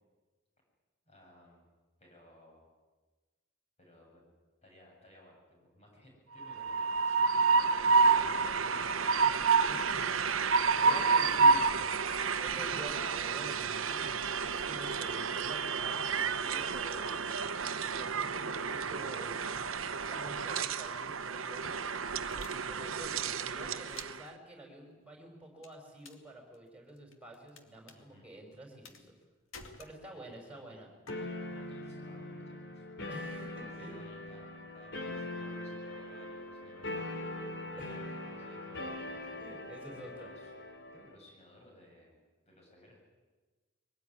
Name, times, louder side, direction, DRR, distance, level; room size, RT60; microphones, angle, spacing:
voice 1, 1.1-1.7 2.0-2.7 3.8-4.3 4.6-8.7 10.9-12.0 27.9-28.3 30.1-30.8 31.5-32.9 33.2-39.3 39.8-42.2 42.5-43.0, left 1 dB, 35° left, -1 dB, 8.0 m, -59 dB
Train, 6.4-24.2, right 5 dB, 80° right, 0.9 m, -30 dB
voice 2, 9.7-11.6 12.2-14.2 14.4-17.3 17.7-19.6 20.0-21.7 22.3-29.1 29.8-30.9 33.1-34.1 37.8-38.0 39.3-40.3, right 1 dB, 5° right, 2 dB, 5.6 m, -49 dB
sound 1, 22.3-23.2 23.8-24.3 25.6-26.3 26.5-27.6 27.9-28.0 28.8-29.2 29.5-30.3 31.1-31.2, left 4 dB, 90° left, 2.3 m, -51 dB
sound 2, 31.1-41.2, left 1 dB, 60° left, 3.5 m, -42 dB
23.0 x 18.5 x 9.7 m, 1.3 s
head